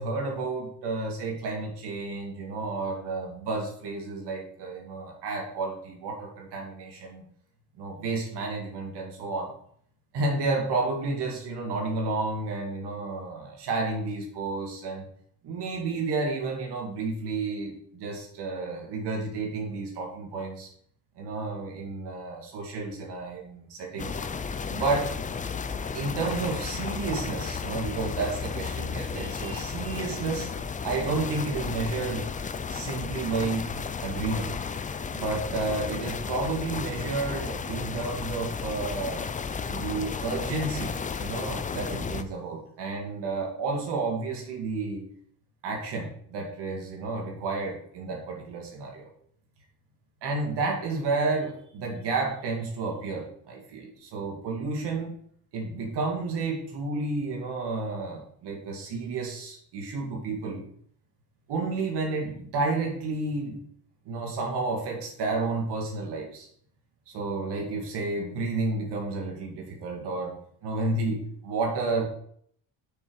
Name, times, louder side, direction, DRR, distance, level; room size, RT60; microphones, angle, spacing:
voice 1, 0.0-7.2 7.8-9.5 10.1-15.1 15.4-20.7 21.2-24.2 24.7-25.1 25.9-30.5 30.8-32.3 32.7-33.8 34.0-34.5 35.1-39.2 39.7-40.9 41.2-45.0 45.6-49.1 50.2-55.2 55.5-60.7 61.5-63.6 64.1-66.5 67.1-70.3 70.6-72.0, right 3 dB, 90° right, 0 dB, 2.3 m, -31 dB
sound 1, 24.0-42.2, left 5 dB, 20° left, 0.4 m, -33 dB
7.0 x 6.4 x 4.8 m, 0.63 s
cardioid pair, 140°, 39 cm